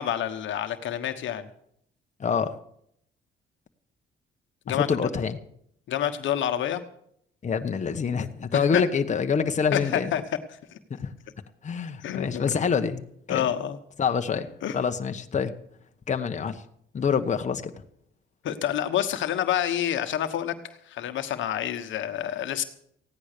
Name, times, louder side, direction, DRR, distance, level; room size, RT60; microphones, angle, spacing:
voice 1, 0.0-1.5 4.7-4.9 5.9-6.8 8.5-8.8 9.7-10.2 10.7-10.8 12.0-12.5 13.3-13.8 14.6-14.8 18.4-20.5 20.9-22.6, left 10 dB, 75° left, 7 dB, 1.2 m, -28 dB
voice 2, 2.2-2.6 4.7-5.4 7.4-10.1 10.9-11.1 11.6-13.0 13.3-13.4 14.0-15.5 16.1-16.6 16.9-17.7, left 6 dB, 35° left, 6 dB, 1.1 m, -26 dB
16.0 x 10.0 x 6.7 m, 0.69 s
cardioid pair, 90°, 20 cm